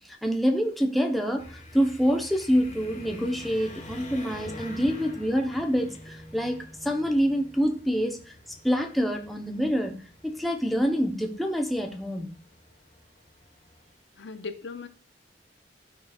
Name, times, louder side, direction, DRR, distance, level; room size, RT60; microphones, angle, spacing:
voice 1, 0.2-8.2 8.6-10.0 10.2-12.3, equal, ahead, 0.8 m, -26 dB
sound 1, 1.4-13.9, left 1 dB, 40° left, 1.5 m, -47 dB
voice 2, 14.2-14.9, left 4 dB, 85° left, 0.7 m, -37 dB
14.0 x 5.0 x 2.4 m
head